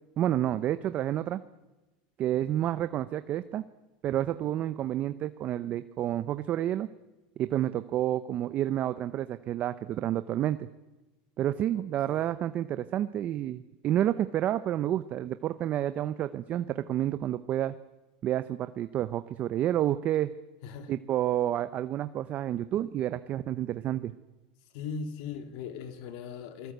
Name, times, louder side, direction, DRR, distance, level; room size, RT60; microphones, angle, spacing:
voice 1, 0.2-1.4 2.2-3.6 4.0-6.9 7.4-10.7 11.4-17.7 18.2-20.3 20.9-24.1, right 12 dB, 35° right, 12 dB, 0.8 m, -29 dB
voice 2, 11.7-12.3 20.6-20.9 24.7-26.7, left 5 dB, 60° left, 8 dB, 2.5 m, -39 dB
28.5 x 20.0 x 8.1 m, 1.1 s
supercardioid pair, 140°, 4 cm